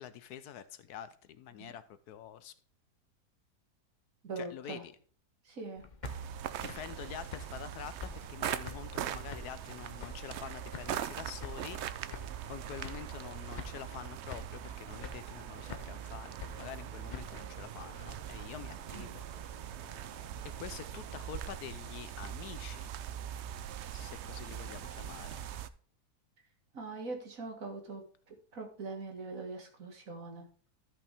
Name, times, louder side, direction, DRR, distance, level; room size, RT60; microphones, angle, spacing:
voice 1, 0.0-2.5 4.4-4.9 6.6-11.8 12.5-19.2 20.6-22.8 23.9-25.3, left 10 dB, 75° left, 13 dB, 1.1 m, -46 dB
voice 2, 4.2-4.8 5.4-5.8 18.9-19.1 26.7-30.5, right 3 dB, 55° right, 3 dB, 2.1 m, -42 dB
sound 1, 5.8-9.0 9.3-10.4 10.7-12.5 12.8-13.3 13.5-14.0 14.3-14.7 15.0-16.1 16.4-18.6, left 4 dB, 50° left, 0.5 m, -47 dB
sound 2, 6.0-25.7, right 10 dB, 80° right, 0.6 m, -42 dB
Aircraft, 15.5-21.5, right 3 dB, 30° right, 1.1 m, -55 dB
13.5 x 5.6 x 3.4 m, 0.44 s
omnidirectional pair, 1.8 m